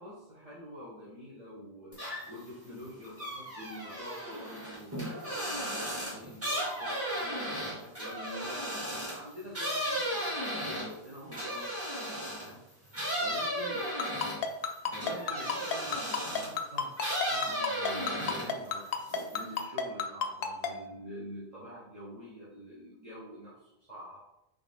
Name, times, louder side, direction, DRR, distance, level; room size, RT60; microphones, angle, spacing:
voice 1, 0.0-12.9 13.2-13.8 14.9-16.9 17.2-19.0 19.3-24.3, equal, 35° right, -10 dB, 1.2 m, -46 dB
sound 1, 1.9-2.5 2.8-12.5 12.9-16.6 17.0-18.7 19.0-19.6, equal, 15° right, 1.7 m, -35 dB
Ringtone, 14.0-20.7, left 7 dB, 65° left, 0.7 m, -30 dB
3.8 x 3.6 x 3.5 m, 0.87 s
omnidirectional pair, 1.1 m